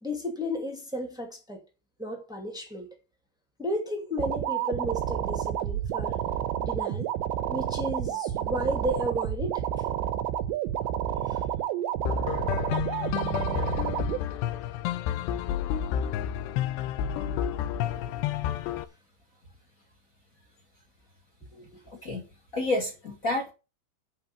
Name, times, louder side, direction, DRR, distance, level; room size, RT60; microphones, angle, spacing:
voice 1, 0.0-1.6 2.0-2.9 3.6-6.2 6.6-7.1 7.5-9.6 11.2-11.4 13.0-13.1 14.0-14.1 16.3-16.4 21.5-21.8, equal, 5° right, 0.4 m, -33 dB
sound 1, 4.2-14.2, right 11 dB, 90° right, 3.1 m, -30 dB
sound 2, 12.0-18.8, left 10 dB, 80° left, 2.8 m, -30 dB
voice 2, 21.9-22.2 22.5-23.5, left 2 dB, 65° left, 0.8 m, -29 dB
11.0 x 4.3 x 7.4 m
omnidirectional pair, 5.1 m